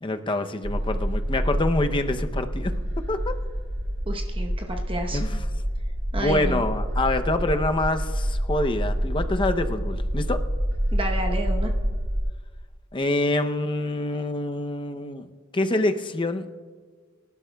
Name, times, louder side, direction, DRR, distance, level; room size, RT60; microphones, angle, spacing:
voice 1, 0.0-2.7 3.1-3.3 5.1-5.4 6.2-10.4 12.9-16.5, left 2 dB, 25° left, 7 dB, 0.6 m, -26 dB
sound 1, 0.6-12.2, equal, 80° right, 4.0 m, -27 dB
voice 2, 4.1-5.2 6.1-6.6 10.9-11.7, right 1 dB, 25° right, 3 dB, 0.9 m, -30 dB
25.0 x 12.0 x 2.3 m, 1.6 s
head